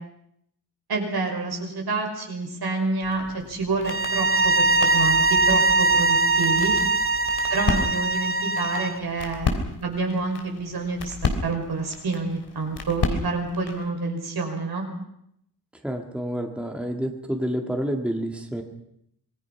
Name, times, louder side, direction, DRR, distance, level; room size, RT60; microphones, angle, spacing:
voice 1, 0.9-6.7 7.5-9.6 9.8-11.2 11.4-14.9, right 3 dB, 70° right, 2 dB, 5.5 m, -28 dB
sound 1, 3.0-13.9, left 4 dB, 80° left, 3.6 m, -33 dB
sound 2, 3.8-9.0, right 3 dB, 30° right, 0.9 m, -21 dB
voice 2, 15.8-18.6, equal, 5° right, 2 dB, 1.9 m, -28 dB
25.5 x 21.5 x 5.9 m, 0.73 s
wide cardioid pair, 175°, 39 cm